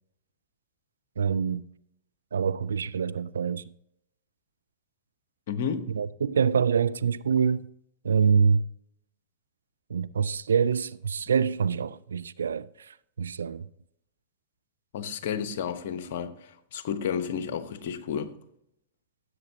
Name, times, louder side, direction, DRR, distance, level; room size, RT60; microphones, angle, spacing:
voice 1, 1.2-1.6 2.3-3.6 5.9-7.7 8.0-8.6 9.9-13.7, right 6 dB, 80° right, 0.4 m, -25 dB
voice 2, 5.5-5.9 14.9-18.3, left 7 dB, 60° left, 0.9 m, -32 dB
16.0 x 8.0 x 2.8 m
hypercardioid pair, 105°, 0 cm